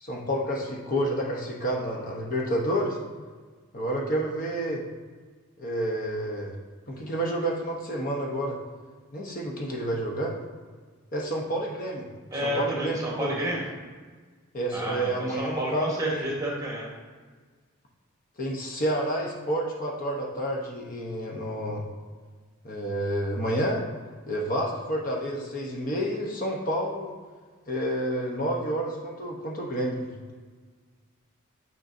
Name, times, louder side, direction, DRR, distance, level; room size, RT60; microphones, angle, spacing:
voice 1, 0.0-3.0 3.7-4.8 5.6-6.5 6.9-8.6 9.1-10.4 11.1-12.1 12.4-13.5 14.5-16.3 18.4-21.8 22.6-23.8 24.3-27.1 27.7-30.1, right 1 dB, 40° left, -2 dB, 0.9 m, -29 dB
voice 2, 12.3-13.6 14.7-16.9, right 1 dB, 15° right, -3 dB, 1.2 m, -30 dB
9.1 x 5.3 x 2.6 m, 1.5 s
head